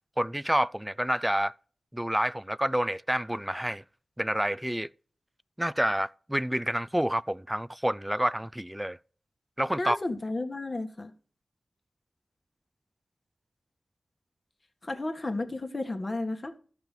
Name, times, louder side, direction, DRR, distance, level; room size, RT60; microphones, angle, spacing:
voice 1, 0.2-1.5 1.9-3.8 4.2-4.9 5.6-9.0 9.6-10.0, equal, 10° right, 0.4 m, -28 dB
voice 2, 9.8-11.1 14.8-16.5, left 2 dB, 40° left, 1.6 m, -32 dB
14.0 x 5.9 x 5.1 m
wide cardioid pair, 65°, 0 cm